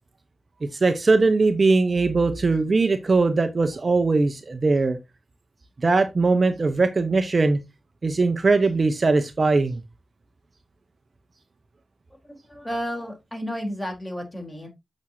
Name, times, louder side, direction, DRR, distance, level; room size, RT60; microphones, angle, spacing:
voice 1, 0.6-5.0 5.8-7.6 8.0-9.8, right 3 dB, 50° right, 1.1 m, -20 dB
voice 2, 12.2-14.7, equal, 20° left, 4.3 m, -32 dB
8.0 x 6.4 x 2.9 m
cardioid pair, 45°, 0 cm